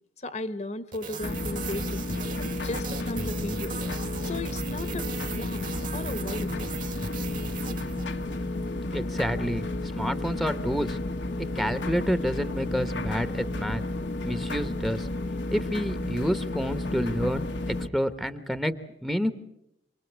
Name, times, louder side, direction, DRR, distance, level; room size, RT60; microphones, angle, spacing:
voice 1, 0.2-2.0 2.6-3.8 4.2-6.5, left 2 dB, 40° left, 13 dB, 1.1 m, -36 dB
sound 1, 0.9-8.5, right 5 dB, 50° right, 2.2 m, -38 dB
sound 2, 1.2-17.9, left 2 dB, 80° left, 1.3 m, -32 dB
voice 2, 8.9-9.6 10.0-11.0 11.5-13.8 14.2-15.1 15.5-17.5 17.9-18.7 19.0-19.3, equal, ahead, 11 dB, 1.0 m, -28 dB
28.0 x 21.5 x 8.1 m, 0.82 s
head